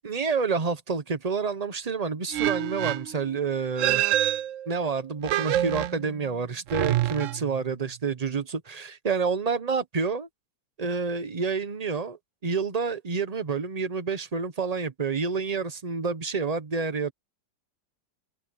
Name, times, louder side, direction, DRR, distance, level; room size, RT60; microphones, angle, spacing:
voice 1, 0.0-4.0 4.7-10.3 10.8-17.1, right 5 dB, 30° right, 0.8 m, -28 dB
sound 1, 2.3-3.2 3.8-4.9 5.2-6.2 6.7-7.7, right 13 dB, 70° right, 0.7 m, -27 dB
open air
omnidirectional pair, 1.8 m